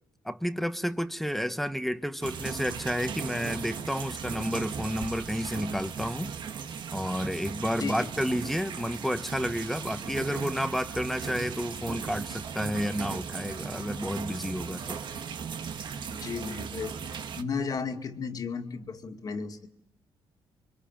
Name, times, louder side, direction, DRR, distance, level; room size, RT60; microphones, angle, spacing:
voice 1, 0.2-6.3 6.9-15.0, equal, ahead, 1.0 m, -31 dB
sound 1, 2.2-17.4, right 6 dB, 55° right, 1.7 m, -37 dB
voice 2, 7.8-8.1 16.1-19.7, left 5 dB, 45° left, 2.2 m, -34 dB
25.5 x 24.0 x 8.9 m
cardioid pair, 115°, 9 cm